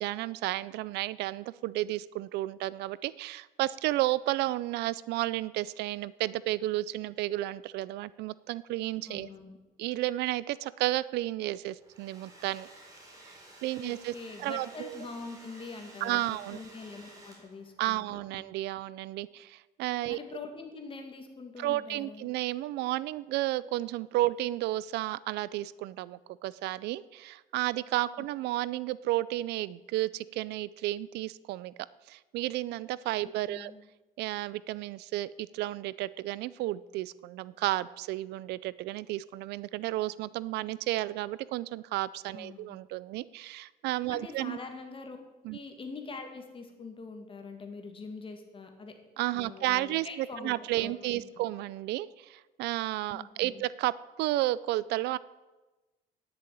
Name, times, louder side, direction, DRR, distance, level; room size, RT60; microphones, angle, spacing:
voice 1, 0.0-9.3 9.8-12.7 13.6-14.1 14.4-15.0 16.0-16.6 17.8-20.2 21.6-31.7 32.1-33.7 34.2-44.6 45.4-45.6 49.2-55.2, right 16 dB, 80° right, 19 dB, 0.4 m, -32 dB
voice 2, 9.1-9.6 13.8-18.4 20.1-22.3 28.2-28.3 33.5-33.8 42.3-42.7 44.1-45.2 45.5-48.9 49.3-51.4 53.1-53.6, left 4 dB, 30° left, 4 dB, 2.3 m, -44 dB
Domestic sounds home sounds, 11.7-17.7, right 1 dB, 20° right, 3.9 m, -53 dB
10.5 x 7.0 x 9.1 m, 1.1 s
cardioid pair, 110°, 17 cm